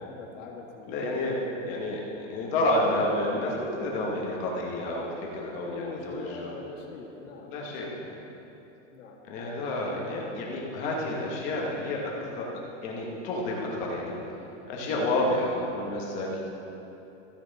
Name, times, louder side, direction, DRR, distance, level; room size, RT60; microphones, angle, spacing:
voice 1, 0.0-1.2 5.3-7.5 8.9-9.2 14.8-15.1, left 4 dB, 75° left, -1 dB, 1.9 m, -42 dB
voice 2, 0.9-6.5 7.5-8.1 9.3-12.5 12.8-14.2 14.7-16.5, left 1 dB, 20° left, -2 dB, 0.9 m, -30 dB
14.5 x 6.8 x 4.0 m, 3.0 s
supercardioid pair, 180°, 39 cm